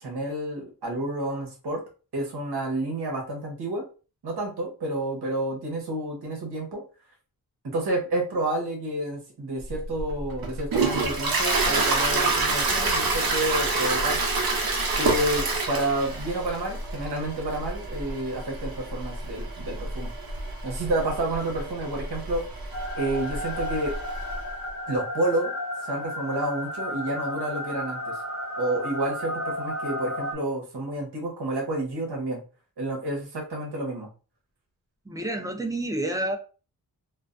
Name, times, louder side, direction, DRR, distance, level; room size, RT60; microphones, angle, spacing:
voice 1, 0.0-1.8 2.1-3.8 4.2-6.8 7.7-14.2 15.0-20.1 20.6-22.5 23.0-23.9 24.9-25.5 25.8-28.2 28.6-32.4 32.8-34.1, right 1 dB, 85° right, -1 dB, 0.9 m, -30 dB
Toilet flush, 9.7-24.4, right 3 dB, 65° right, 0.6 m, -28 dB
sound 1, 22.7-30.3, left 1 dB, 35° left, 0.6 m, -33 dB
voice 2, 35.1-36.4, right 1 dB, 10° right, 4 dB, 0.3 m, -29 dB
2.3 x 2.2 x 2.5 m, 0.35 s
wide cardioid pair, 130°, 38 cm